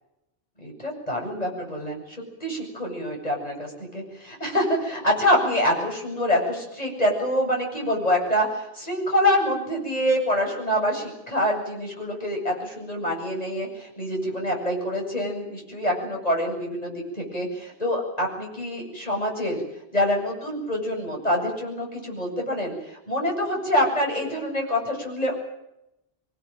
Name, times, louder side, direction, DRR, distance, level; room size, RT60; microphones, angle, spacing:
voice 1, 0.6-19.6 19.9-25.3, equal, 40° left, 0 dB, 8.2 m, -26 dB
24.5 x 20.0 x 9.2 m, 0.85 s
omnidirectional pair, 1.0 m